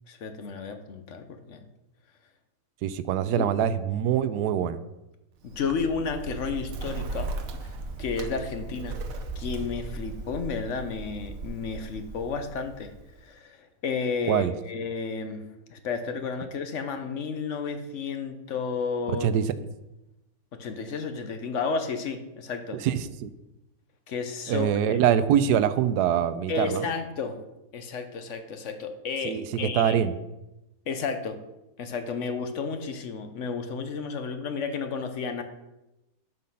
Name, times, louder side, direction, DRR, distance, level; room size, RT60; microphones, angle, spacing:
voice 1, 0.1-1.7 3.4-3.5 5.4-7.3 7.6-7.7 8.0-9.0 9.4-12.9 13.2-19.3 20.6-22.8 24.1-25.0 26.5-27.4 27.7-29.9 30.9-31.3 31.8-35.4, left 5 dB, 55° left, 7 dB, 1.0 m, -32 dB
voice 2, 2.8-4.8 14.3-14.5 19.1-19.4 22.8-22.9 23.2-23.3 24.5-26.8 29.2-29.4 29.7-30.1, right 9 dB, 85° right, 13 dB, 1.2 m, -24 dB
Bird, 5.4-13.2, right 3 dB, 65° right, 1.2 m, -37 dB
7.4 x 5.8 x 5.5 m, 0.96 s
omnidirectional pair, 1.7 m